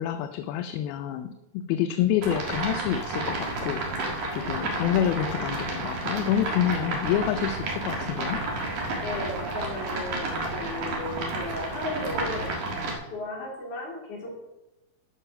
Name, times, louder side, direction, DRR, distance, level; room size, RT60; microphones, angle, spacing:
voice 1, 0.0-8.5, left 10 dB, 85° left, 8 dB, 2.5 m, -28 dB
sound 1, 2.2-12.9, right 2 dB, 55° right, 2.9 m, -31 dB
voice 2, 4.2-4.8 9.0-12.5 13.1-14.3, left 2 dB, 55° left, -3 dB, 4.7 m, -35 dB
14.0 x 5.9 x 5.7 m, 0.95 s
omnidirectional pair, 4.3 m